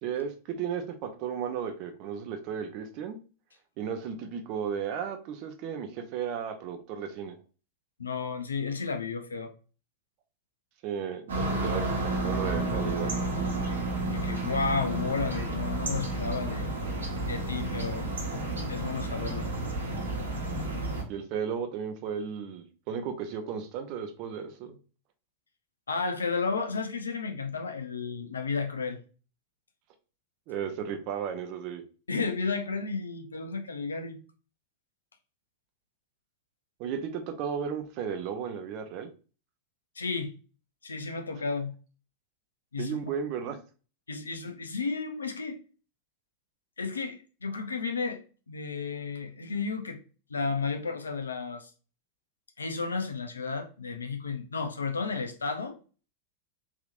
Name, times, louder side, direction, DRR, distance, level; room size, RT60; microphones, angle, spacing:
voice 1, 0.0-3.2 3.8-7.4 10.8-13.1 20.9-24.8 30.5-31.8 36.8-39.1 42.8-43.6, right 7 dB, 45° right, 0.6 m, -34 dB
voice 2, 8.0-9.5 14.0-16.7 17.3-18.1 18.7-19.5 25.9-29.0 32.1-34.2 40.0-40.3 40.8-41.7 42.7-43.1 44.1-45.6 46.8-48.2 48.5-50.0 50.3-51.7 52.6-55.8, left 4 dB, 75° left, 0.5 m, -32 dB
sound 1, 11.3-21.0, right 2 dB, 70° right, 1.0 m, -31 dB
3.5 x 2.8 x 2.4 m
figure-of-eight pair, 90°, 0 cm